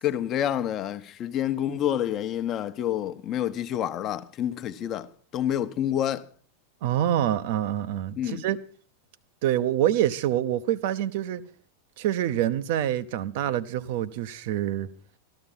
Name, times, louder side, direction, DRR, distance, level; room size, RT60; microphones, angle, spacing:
voice 1, 0.0-6.3 8.2-8.4, left 10 dB, 30° left, 1.0 m, -28 dB
voice 2, 6.8-8.6 9.4-11.4 12.0-14.9, right 11 dB, 50° right, 0.9 m, -26 dB
14.0 x 13.0 x 5.4 m
figure-of-eight pair, 90°, 0 cm